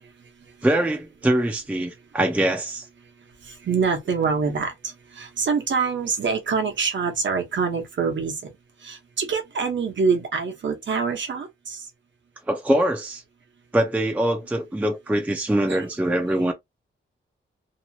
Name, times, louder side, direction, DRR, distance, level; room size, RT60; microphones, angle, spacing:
voice 1, 0.6-2.9 12.5-13.2 13.7-16.5, right 1 dB, 5° right, 0.5 m, -23 dB
voice 2, 3.5-8.3 8.8-11.8 15.7-15.8, right 5 dB, 65° right, 1.0 m, -25 dB
2.9 x 2.4 x 2.8 m
wide cardioid pair, 150°, 21 cm